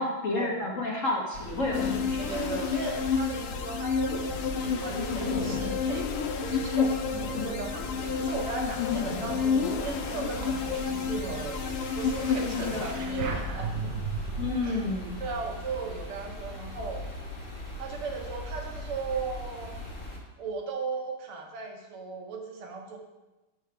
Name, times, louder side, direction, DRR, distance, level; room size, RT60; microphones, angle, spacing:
voice 1, 0.0-2.3 7.3-7.6 14.4-15.2, left 2 dB, 45° left, -3 dB, 1.1 m, -30 dB
sound 1, 1.3-20.2, left 1 dB, 30° left, 1.4 m, -40 dB
sound 2, 1.7-13.5, left 6 dB, 85° left, 1.6 m, -30 dB
voice 2, 2.2-6.1 6.4-7.0 7.4-11.6 11.9-13.7 14.6-14.8 15.2-17.0 17.8-19.8 20.4-23.0, right 4 dB, 75° right, 2 dB, 1.9 m, -36 dB
sound 3, 4.1-8.3 8.8-14.5, right 4 dB, 60° right, 0.9 m, -39 dB
6.2 x 4.6 x 6.6 m, 1.1 s
omnidirectional pair, 2.4 m